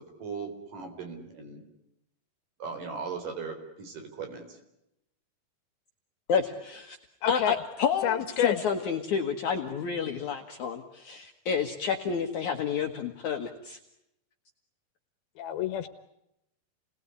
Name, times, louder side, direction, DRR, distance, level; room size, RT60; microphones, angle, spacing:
voice 1, 0.2-1.6 2.6-4.6, right 5 dB, 60° right, 6 dB, 5.7 m, -38 dB
voice 2, 6.3-7.0 7.3-13.8, left 6 dB, 60° left, 4 dB, 2.6 m, -30 dB
voice 3, 7.2-7.6 8.0-8.6 15.4-15.9, left 9 dB, 80° left, 10 dB, 3.1 m, -28 dB
29.5 x 20.5 x 9.8 m, 0.84 s
omnidirectional pair, 4.3 m